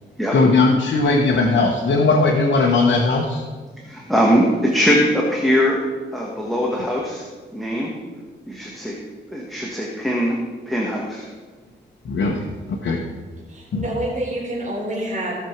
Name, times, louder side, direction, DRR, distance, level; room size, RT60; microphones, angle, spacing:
voice 1, 0.3-3.4 12.0-13.0 13.7-13.9, left 3 dB, 70° left, -1 dB, 1.2 m, -18 dB
voice 2, 3.8-5.8 6.1-7.3 7.5-7.9 8.5-9.0 9.3-10.4 10.7-11.3, equal, ahead, -2 dB, 1.4 m, -21 dB
voice 3, 13.5-15.4, right 1 dB, 40° right, -4 dB, 4.0 m, -27 dB
16.5 x 6.2 x 4.6 m, 1.4 s
wide cardioid pair, 135°, 20 cm